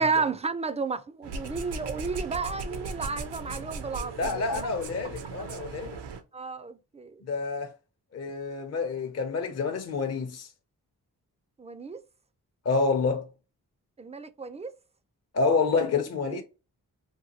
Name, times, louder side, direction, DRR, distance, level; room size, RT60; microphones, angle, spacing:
voice 1, 0.0-4.7 6.3-7.1 11.6-12.0 14.0-14.7 16.3-16.4, right 4 dB, 20° right, 0.3 m, -32 dB
sound 1, 1.2-6.2, right 4 dB, 80° right, 0.6 m, -37 dB
voice 2, 4.2-6.0 7.2-7.7 8.1-10.5 12.6-13.3 15.3-16.4, left 4 dB, 40° left, 0.6 m, -28 dB
2.8 x 2.2 x 2.8 m
cardioid pair, 40°, 40 cm